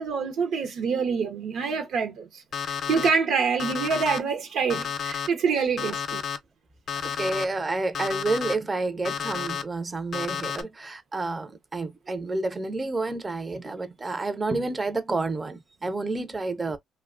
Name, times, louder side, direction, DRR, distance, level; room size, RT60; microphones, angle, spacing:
voice 1, 0.0-6.2, right 5 dB, 70° right, 0.6 m, -26 dB
Alarm, 2.5-3.1 3.6-4.2 4.7-5.3 5.8-6.4 6.9-7.4 7.9-8.5 9.0-9.6 10.1-10.6, left 7 dB, 50° left, 0.6 m, -31 dB
voice 2, 7.0-16.8, right 3 dB, 20° right, 0.5 m, -29 dB
2.9 x 2.1 x 2.4 m
cardioid pair, 125°, 0 cm